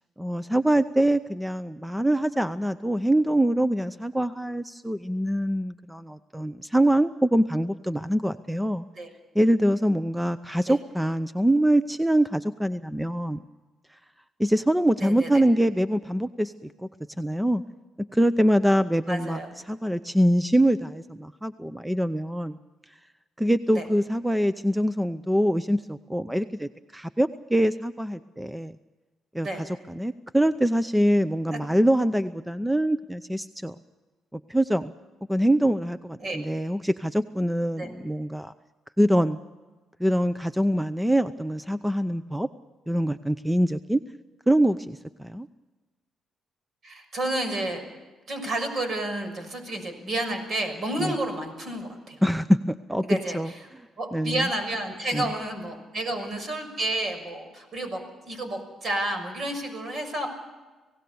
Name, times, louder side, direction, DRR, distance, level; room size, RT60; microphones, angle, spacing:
voice 1, 0.2-8.8 9.3-13.4 14.4-16.7 17.2-17.6 18.1-22.6 23.4-28.7 29.3-33.8 34.3-34.9 35.3-38.5 39.0-39.4 40.0-42.5 42.9-44.0 44.5-45.5 51.0-51.1 52.2-53.5 54.1-54.5 55.1-55.3, right 1 dB, 5° right, 13 dB, 0.6 m, -24 dB
voice 2, 15.0-15.4 19.1-19.5 23.7-23.8 29.4-29.6 36.2-36.4 37.7-37.9 46.8-47.8 48.3-52.2 53.0-53.4 54.0-58.0 58.3-60.3, right 1 dB, 50° right, 6 dB, 6.2 m, -30 dB
26.5 x 17.5 x 7.1 m, 1.2 s
cardioid pair, 90°, 0 cm